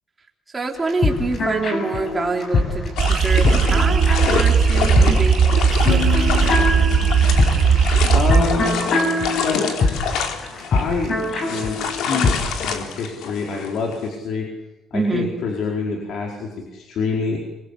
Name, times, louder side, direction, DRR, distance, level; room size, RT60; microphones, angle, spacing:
voice 1, 0.5-5.4 5.9-6.5 14.9-15.3, right 3 dB, 15° right, 2 dB, 3.7 m, -26 dB
sound 1, 0.8-12.4, left 3 dB, 40° left, 7.0 m, -23 dB
sound 2, 3.0-14.1, left 7 dB, 90° left, 4.0 m, -27 dB
sound 3, 3.0-8.4, right 6 dB, 35° right, 3.4 m, -17 dB
voice 2, 8.1-8.8 9.4-9.7 10.7-11.2 11.5-14.5 14.9-17.4, left 4 dB, 60° left, 0 dB, 4.7 m, -26 dB
26.5 x 23.5 x 8.4 m, 1.0 s
cardioid pair, 170°, 0 cm